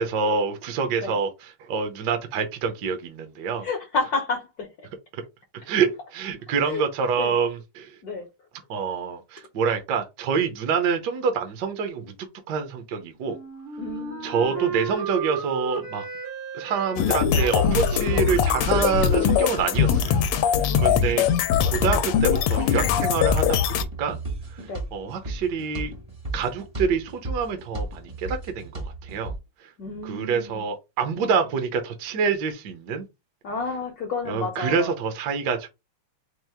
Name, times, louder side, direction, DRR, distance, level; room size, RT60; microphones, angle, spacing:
voice 1, 0.0-3.7 5.1-5.2 5.7-7.9 8.7-12.1 12.5-13.4 14.2-16.1 16.5-21.2 21.6-24.2 24.5-25.9 26.3-29.3 29.6-29.7 30.0-33.1 34.3-35.7, right 6 dB, 65° right, 1.2 m, -27 dB
voice 2, 3.6-4.7 6.6-6.8 7.2-7.3 8.0-8.3 13.8-14.7 20.7-21.2 24.6-24.8 29.8-30.6 31.3-31.4 33.4-34.9, left 3 dB, 60° left, 1.0 m, -31 dB
Wind instrument woodwind instrument, 13.2-20.0, right 5 dB, 90° right, 2.3 m, -34 dB
sound 1, 17.0-23.8, left 8 dB, 85° left, 1.5 m, -21 dB
sound 2, 17.7-29.4, right 2 dB, 30° right, 0.6 m, -35 dB
4.6 x 2.4 x 3.4 m
omnidirectional pair, 2.4 m